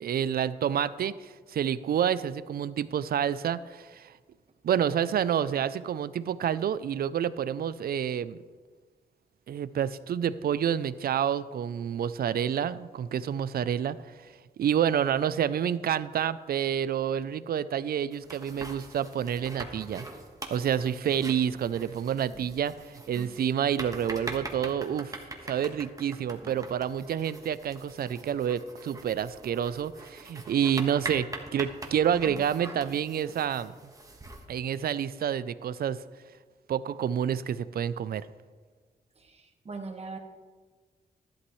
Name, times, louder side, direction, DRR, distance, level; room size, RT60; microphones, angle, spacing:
voice 1, 0.0-4.1 4.6-8.4 9.5-14.0 14.6-20.1 20.5-25.2 25.4-33.7 34.5-36.0 36.7-38.3, right 9 dB, 65° right, 16 dB, 0.4 m, -28 dB
sound 1, 18.1-34.4, right 2 dB, 20° right, 1.4 m, -43 dB
voice 2, 39.2-40.2, right 4 dB, 40° right, 4 dB, 1.4 m, -41 dB
13.0 x 11.5 x 3.1 m, 1.4 s
cardioid pair, 105°, 17 cm